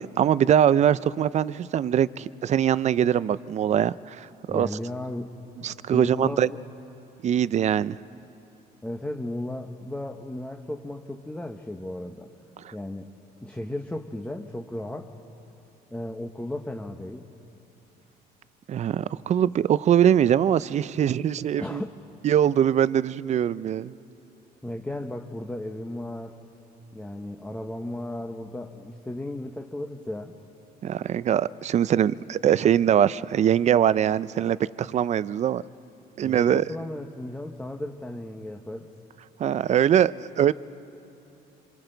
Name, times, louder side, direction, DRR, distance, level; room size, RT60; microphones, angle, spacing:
voice 1, 0.0-4.7 5.6-6.5 7.2-8.0 18.7-21.8 22.2-23.9 30.8-35.6 36.2-36.6 39.4-40.5, right 9 dB, 45° right, 18 dB, 0.5 m, -22 dB
voice 2, 4.5-5.3 5.9-6.6 8.8-12.3 12.7-13.1 13.4-15.1 15.9-17.3 21.6-21.9 24.6-26.4 26.9-30.3 36.2-38.9, left 1 dB, 10° left, 3 dB, 1.0 m, -35 dB
27.5 x 26.5 x 4.0 m, 2.8 s
cardioid pair, 110°, 17 cm